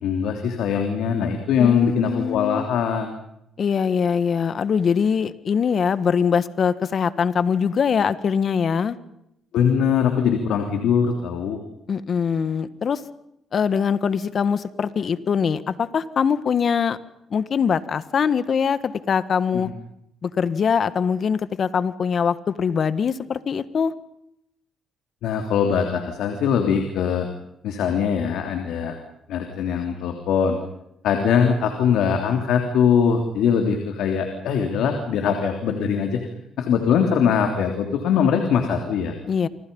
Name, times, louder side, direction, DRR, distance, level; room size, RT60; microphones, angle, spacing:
voice 1, 0.0-3.1 9.5-11.6 19.5-19.7 25.2-27.3 27.6-29.0 29.3-30.6 31.0-36.2 36.6-39.1, left 7 dB, 85° left, 4 dB, 3.3 m, -21 dB
voice 2, 1.6-2.7 3.6-9.0 11.9-13.0 13.5-17.0 17.3-19.7 20.2-23.9 39.3-39.5, left 6 dB, 50° left, 14 dB, 1.6 m, -22 dB
28.5 x 25.5 x 5.5 m, 0.79 s
cardioid pair, 90°, 0 cm